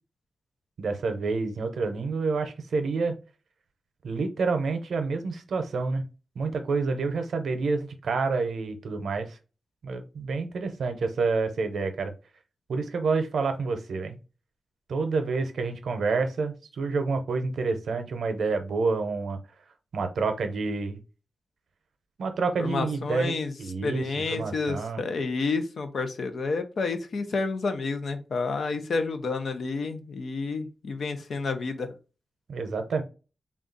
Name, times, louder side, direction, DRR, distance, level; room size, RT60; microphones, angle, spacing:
voice 1, 0.8-3.1 4.0-6.0 6.4-9.4 9.8-12.1 12.7-14.2 14.9-19.4 19.9-21.0 22.2-24.0 24.3-25.0 32.5-33.0, right 4 dB, 85° right, 0.7 m, -28 dB
voice 2, 22.6-23.5 23.8-31.9, left 4 dB, 60° left, 0.6 m, -30 dB
3.7 x 2.3 x 3.9 m
wide cardioid pair, 180°, 0 cm